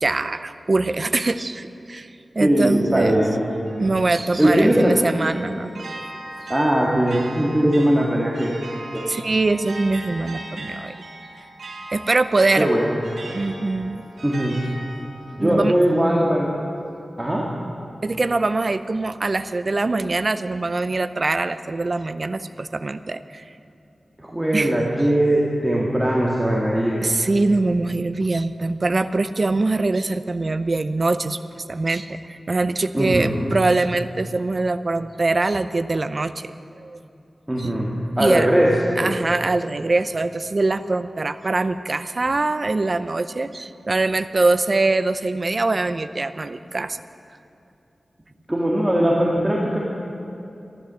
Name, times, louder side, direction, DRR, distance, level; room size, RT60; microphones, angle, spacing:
voice 1, 0.0-3.2 3.7-5.8 9.1-10.9 11.9-12.7 13.3-14.0 15.4-15.7 18.0-23.4 24.5-24.7 27.0-37.0 37.6-37.7 38.2-38.5 39.0-47.0, right 3 dB, 45° right, 12 dB, 0.6 m, -23 dB
voice 2, 2.4-3.5 4.4-4.9 6.5-8.5 8.9-9.0 12.6-13.0 14.2-14.6 15.4-16.5 17.2-17.5 24.2-27.0 32.9-33.4 37.5-37.9 38.2-38.7 39.0-39.1 48.5-49.8, right 1 dB, 15° right, -3 dB, 1.8 m, -20 dB
sound 1, 3.7-16.6, right 1 dB, 90° right, 2.2 m, -39 dB
14.0 x 11.5 x 7.5 m, 2.7 s
wide cardioid pair, 80°, 0 cm